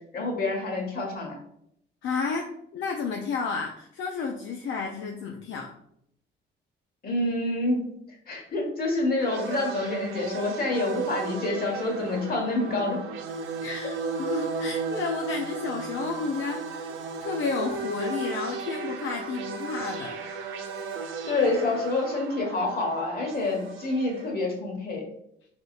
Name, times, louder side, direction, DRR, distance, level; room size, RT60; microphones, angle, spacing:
voice 1, 0.1-1.4 7.0-7.8 8.1-13.0 21.3-25.0, left 2 dB, 50° left, 0 dB, 1.3 m, -27 dB
voice 2, 2.0-5.7 13.6-16.9 17.2-20.2, left 4 dB, 75° left, 2 dB, 0.5 m, -31 dB
sound 1, 9.2-24.3, right 4 dB, 85° right, 0.5 m, -35 dB
3.9 x 3.6 x 2.4 m, 0.73 s
cardioid pair, 90°, 20 cm